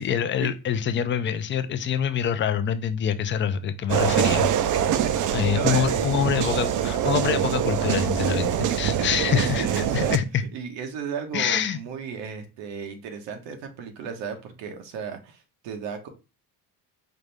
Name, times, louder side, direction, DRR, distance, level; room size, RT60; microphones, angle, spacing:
voice 1, 0.0-4.5 5.3-10.4 11.3-11.8, left 8 dB, 30° left, 11 dB, 0.4 m, -25 dB
sound 1, 3.9-10.2, right 9 dB, 45° right, 0.4 m, -24 dB
voice 2, 4.7-6.4 8.8-10.2 10.5-16.1, right 6 dB, 85° right, 5 dB, 1.2 m, -35 dB
5.1 x 2.6 x 3.3 m, 0.31 s
cardioid pair, 140°, 43 cm